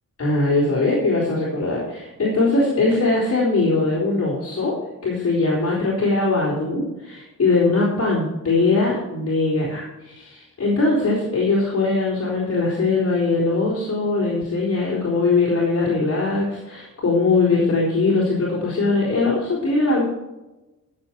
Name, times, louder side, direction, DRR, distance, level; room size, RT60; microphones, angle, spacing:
voice 1, 0.2-20.0, left 3 dB, 45° left, -5 dB, 3.8 m, -21 dB
14.5 x 7.4 x 4.6 m, 1.1 s
cardioid pair, 105°, 33 cm